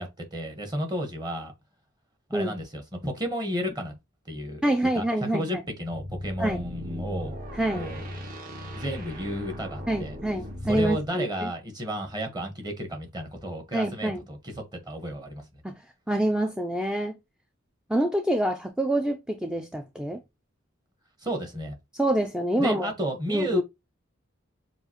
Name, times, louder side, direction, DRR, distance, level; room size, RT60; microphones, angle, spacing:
voice 1, 0.0-1.5 2.3-3.9 4.3-4.6 4.9-7.4 7.7-8.1 8.7-10.2 10.6-15.5 21.2-21.7 22.6-23.6, equal, 20° right, 1.1 m, -32 dB
voice 2, 4.6-5.6 6.4-6.6 7.5-7.9 9.9-11.5 13.7-14.2 15.6-15.8 16.1-17.2 17.9-20.2 22.0-22.9 23.3-23.6, right 1 dB, 5° right, 0.3 m, -26 dB
sound 1, 5.8-11.1, equal, 45° right, 1.3 m, -37 dB
6.8 x 2.5 x 2.9 m
head